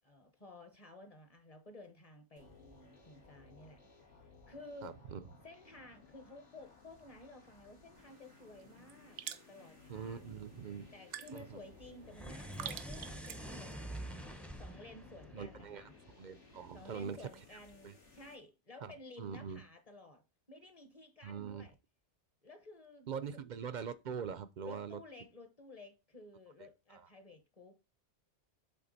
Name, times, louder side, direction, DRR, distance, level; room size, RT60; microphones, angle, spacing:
voice 1, 0.0-3.8 4.5-5.0 5.4-10.4 10.9-13.9 14.5-15.9 16.7-20.2 20.5-21.7 22.4-23.4 24.6-27.8, left 2 dB, 35° left, 1.0 m, -54 dB
sound 1, 2.4-18.4, left 4 dB, 85° left, 2.5 m, -60 dB
voice 2, 4.8-5.2 9.9-10.9 11.3-11.6 15.3-15.9 16.2-17.2 17.8-17.9 18.8-18.9 19.2-19.6 21.2-21.6 23.1-25.0 26.6-27.1, right 7 dB, 55° right, 0.5 m, -43 dB
sound 2, 8.0-13.7, right 10 dB, 85° right, 1.0 m, -50 dB
sound 3, 12.1-16.5, right 1 dB, ahead, 0.6 m, -47 dB
7.8 x 3.8 x 4.0 m
omnidirectional pair, 1.2 m